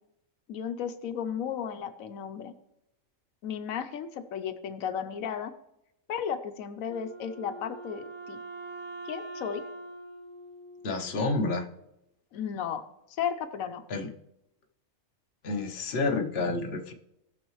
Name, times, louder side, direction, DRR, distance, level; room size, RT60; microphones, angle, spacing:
voice 1, 0.5-2.5 3.4-5.5 6.1-8.4 9.0-9.6 12.3-13.8, left 8 dB, 90° left, 9 dB, 1.1 m, -34 dB
Wind instrument woodwind instrument, 6.9-11.4, right 2 dB, 60° right, 1.5 m, -43 dB
voice 2, 10.8-11.7 13.9-14.1 15.4-16.9, left 3 dB, 55° left, 3 dB, 1.2 m, -29 dB
18.0 x 6.3 x 3.1 m, 0.85 s
omnidirectional pair, 1.4 m